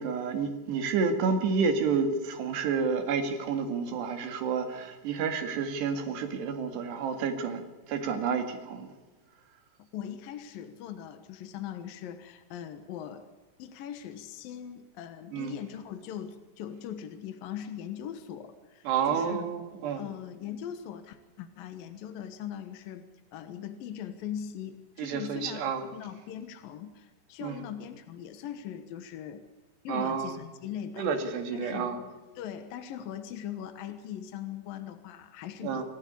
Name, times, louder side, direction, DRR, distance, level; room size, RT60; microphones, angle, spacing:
voice 1, 0.0-7.6 7.9-8.9 15.3-15.6 18.9-20.0 25.0-25.8 27.4-27.6 29.9-30.3 31.0-32.0 35.6-35.8, right 5 dB, 70° right, 7 dB, 4.2 m, -30 dB
voice 2, 9.8-13.3 13.6-19.5 20.0-23.0 23.3-29.4 29.8-31.1 31.5-32.0 32.4-35.8, left 9 dB, 65° left, 8 dB, 2.6 m, -40 dB
27.0 x 14.5 x 8.5 m, 1.2 s
omnidirectional pair, 5.1 m